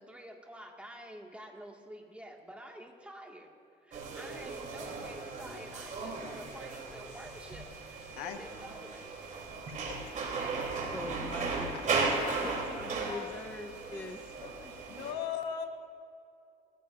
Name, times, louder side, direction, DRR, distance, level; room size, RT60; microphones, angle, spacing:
voice 1, 0.0-3.5 3.8-7.7 8.1-9.1, equal, 5° right, 0 dB, 1.9 m, -49 dB
sound 1, 3.9-15.1, right 4 dB, 50° right, 3.3 m, -36 dB
voice 2, 10.8-12.1 12.4-14.7, left 2 dB, 10° left, 4 dB, 0.8 m, -43 dB
voice 3, 12.0-12.6 13.1-13.3 13.9-14.1 14.4-14.5 15.0-15.7, left 8 dB, 90° left, 5 dB, 1.3 m, -38 dB
20.0 x 15.0 x 2.6 m, 2.5 s
cardioid pair, 110°, 17 cm